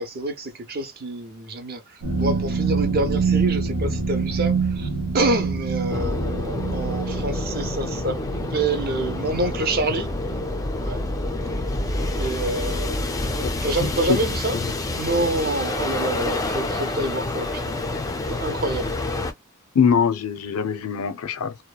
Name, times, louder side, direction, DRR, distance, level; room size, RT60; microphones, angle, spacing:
voice 1, 0.0-1.8 2.2-4.9 5.1-8.2 8.5-10.1 10.8-11.0 12.2-14.6 14.9-17.7 18.3-19.0, right 2 dB, 45° right, 0.6 m, -27 dB
sound 1, 2.0-12.7 13.0-13.3 13.7-13.8, right 4 dB, 80° right, 0.8 m, -27 dB
sound 2, 5.9-19.3, left 2 dB, 15° left, 0.4 m, -28 dB
voice 2, 13.8-14.2 19.7-21.6, left 6 dB, 80° left, 0.4 m, -22 dB
2.8 x 2.1 x 2.2 m
head